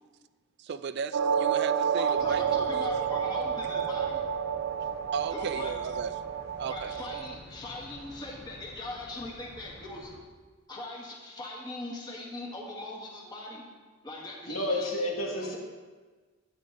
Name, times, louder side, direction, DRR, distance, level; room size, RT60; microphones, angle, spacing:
voice 1, 0.6-2.9 5.1-6.2 6.6-6.9, right 6 dB, 55° right, 0.4 m, -35 dB
sound 1, 1.1-7.3, right 8 dB, 85° right, 0.7 m, -30 dB
voice 2, 2.0-4.2 5.3-5.7 6.6-10.1 10.7-13.6 14.0-15.0, left 2 dB, 20° left, 1.7 m, -40 dB
sound 2, 2.2-10.2, left 1 dB, 55° left, 1.2 m, -50 dB
voice 3, 14.5-15.6, left 1 dB, 85° left, 2.2 m, -30 dB
10.5 x 10.5 x 3.9 m
head